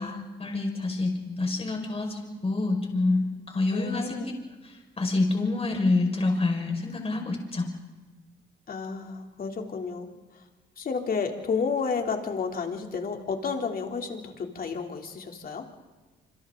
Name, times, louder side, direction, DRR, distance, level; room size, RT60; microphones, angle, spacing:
voice 1, 0.0-4.2 4.6-7.7, left 2 dB, 30° left, 2 dB, 5.4 m, -27 dB
voice 2, 3.7-4.3 8.7-10.4 10.8-15.7, left 5 dB, 50° left, 3 dB, 3.2 m, -31 dB
27.5 x 26.0 x 3.9 m, 1.3 s
cardioid pair, 90°, 20 cm